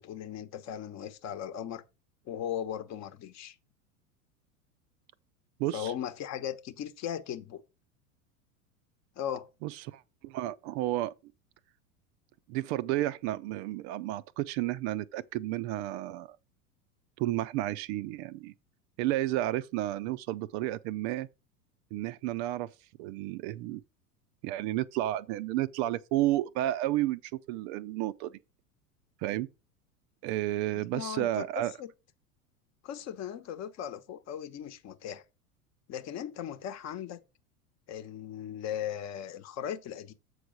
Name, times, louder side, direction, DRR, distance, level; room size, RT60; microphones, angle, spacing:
voice 1, 0.0-1.8 2.3-3.6 5.7-7.6 9.2-9.5 30.7-31.9 32.8-35.2 35.9-37.2 37.9-40.1, left 9 dB, 35° left, 1.0 m, -38 dB
voice 2, 5.6-5.9 9.6-11.1 12.5-16.4 17.2-18.5 19.0-21.3 21.9-22.7 23.0-23.8 24.4-28.4 29.2-29.5 30.2-31.7, right 15 dB, 45° right, 0.5 m, -32 dB
7.7 x 4.8 x 5.0 m
hypercardioid pair, 85°, 44 cm